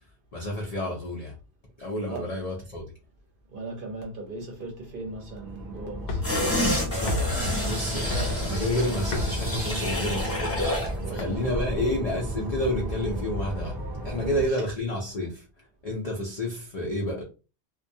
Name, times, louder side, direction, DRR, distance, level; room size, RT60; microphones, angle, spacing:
voice 1, 0.3-1.3 1.8-2.9 6.9-13.8 14.0-15.4 15.8-17.2, left 1 dB, 50° left, 0.5 m, -30 dB
voice 2, 3.5-6.3 11.0-11.4 14.1-14.6, right 3 dB, 55° right, 0.7 m, -38 dB
sound 1, 4.8-14.5, right 1 dB, 20° right, 1.1 m, -34 dB
sound 2, 6.0-11.7, left 2 dB, 80° left, 0.9 m, -34 dB
sound 3, 6.2-11.0 11.3-11.4, left 1 dB, 15° left, 0.7 m, -29 dB
2.3 x 2.1 x 2.6 m
omnidirectional pair, 1.3 m